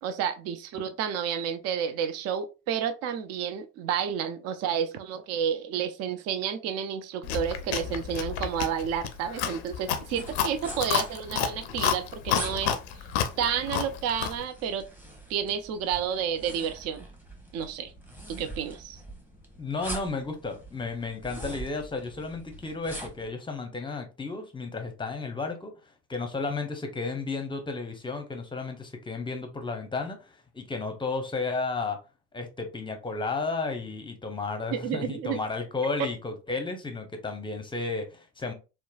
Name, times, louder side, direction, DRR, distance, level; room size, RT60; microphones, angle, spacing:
voice 1, 0.0-12.7 13.4-14.9 15.3-17.1 17.5-17.9 18.3-19.0 34.7-35.4, right 8 dB, 50° right, 0.4 m, -30 dB
Chewing mastication, 7.2-14.4, left 9 dB, 75° left, 0.5 m, -30 dB
sound 1, 10.0-23.3, right 1 dB, 5° right, 0.9 m, -44 dB
voice 2, 19.6-25.7 26.1-32.0 32.3-38.5, left 3 dB, 15° left, 0.6 m, -33 dB
3.0 x 2.0 x 2.3 m
hypercardioid pair, 60°, 33 cm